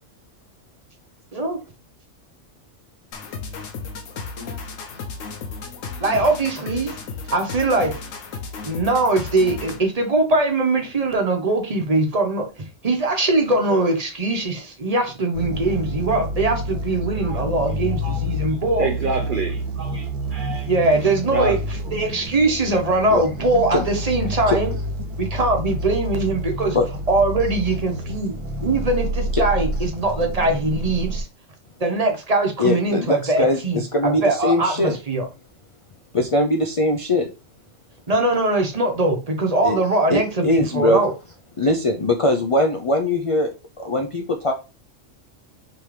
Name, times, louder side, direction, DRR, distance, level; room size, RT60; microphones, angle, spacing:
sound 1, 3.1-9.9, left 4 dB, 90° left, 1.1 m, -34 dB
voice 1, 6.0-7.0 7.3-7.9 8.7-12.4 12.8-18.9 20.6-21.6 21.9-24.7 25.2-26.8 27.1-28.3 28.6-31.3 31.8-35.2 38.1-41.1, right 2 dB, 35° right, 0.9 m, -21 dB
sound 2, 15.3-31.2, equal, 75° right, 1.2 m, -28 dB
voice 2, 17.9-18.2 18.8-20.7 21.3-21.6, right 4 dB, 55° right, 0.6 m, -28 dB
voice 3, 32.6-35.0 36.1-37.3 39.6-39.8 40.1-41.0 41.6-43.5 43.8-44.5, left 1 dB, 60° left, 0.3 m, -21 dB
5.5 x 2.9 x 3.2 m
omnidirectional pair, 1.3 m